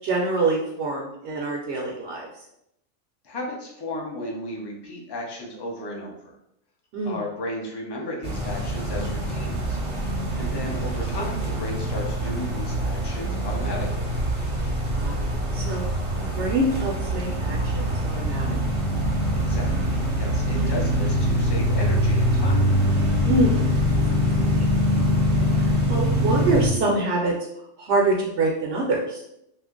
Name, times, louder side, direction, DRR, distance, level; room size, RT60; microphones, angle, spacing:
voice 1, 0.0-2.3 6.9-7.2 10.2-10.7 15.0-15.8 16.2-18.6 20.5-20.7 23.2-23.6 24.1-27.3 27.8-29.2, right 2 dB, 70° right, -1 dB, 0.8 m, -26 dB
voice 2, 3.2-6.3 7.0-9.8 10.3-14.1 19.3-22.7, left 1 dB, 30° left, -2 dB, 0.4 m, -34 dB
sound 1, 8.2-26.7, equal, 35° right, 0.5 m, -24 dB
2.7 x 2.5 x 3.6 m, 0.80 s
omnidirectional pair, 1.3 m